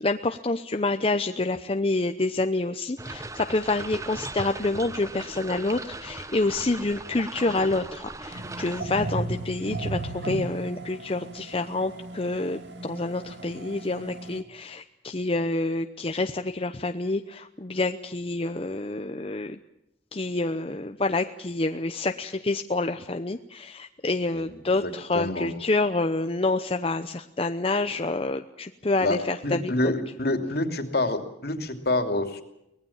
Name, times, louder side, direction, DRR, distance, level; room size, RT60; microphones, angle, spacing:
voice 1, 0.0-19.6 20.1-29.7, left 2 dB, 35° left, 7 dB, 0.8 m, -28 dB
sound 1, 3.0-8.8, right 2 dB, 20° right, 1.0 m, -38 dB
sound 2, 8.3-14.4, right 2 dB, 90° right, 2.1 m, -36 dB
voice 2, 24.3-25.6 29.0-32.4, left 2 dB, 60° left, 6 dB, 2.8 m, -28 dB
24.0 x 19.0 x 7.2 m, 0.85 s
head